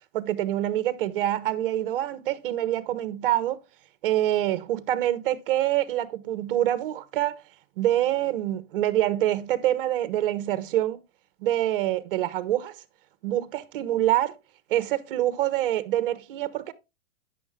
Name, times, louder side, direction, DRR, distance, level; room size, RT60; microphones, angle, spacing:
voice 1, 0.1-3.6 4.0-7.4 7.8-11.0 11.4-12.7 13.2-14.3 14.7-16.7, right 13 dB, 45° right, 1.0 m, -26 dB
10.5 x 6.6 x 3.7 m
supercardioid pair, 170°, 37 cm